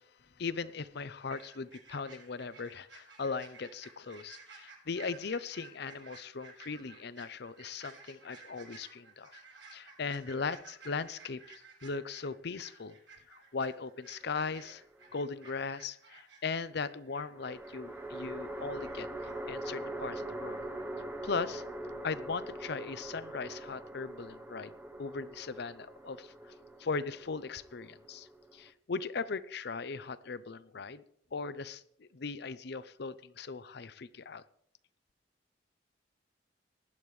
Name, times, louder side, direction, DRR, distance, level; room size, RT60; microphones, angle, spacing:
voice 1, 0.4-9.4 9.7-13.0 13.3-14.8 15.1-19.1 19.5-20.7 21.2-21.6 22.0-24.7 25.0-26.5 26.8-31.0 31.3-34.4, left 4 dB, 65° left, 16 dB, 0.6 m, -38 dB
sound 1, 1.3-19.4 19.6-19.7, right 4 dB, 90° right, 6.5 m, -55 dB
sound 2, 14.2-15.1 17.3-28.7, right 1 dB, 10° right, 0.9 m, -43 dB
19.0 x 10.5 x 3.2 m, 0.67 s
head